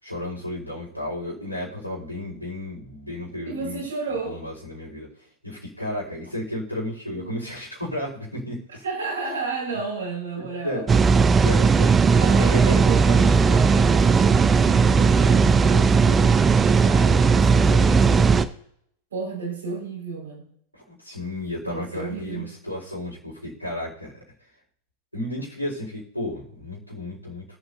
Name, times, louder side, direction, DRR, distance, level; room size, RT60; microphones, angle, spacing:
voice 1, 0.0-3.8 4.2-8.8 10.3-10.9 11.4-12.0 12.4-12.9 20.7-24.1 25.1-27.4, left 1 dB, 90° left, -7 dB, 4.3 m, -33 dB
voice 2, 3.4-4.4 7.1-7.5 8.8-11.0 12.1-18.3 19.1-20.5 21.7-22.5, right 4 dB, 70° right, 0 dB, 5.2 m, -32 dB
sound 1, 10.9-18.4, right 5 dB, 20° right, 0.7 m, -17 dB
23.5 x 8.1 x 2.7 m, 0.68 s
figure-of-eight pair, 90°, 0 cm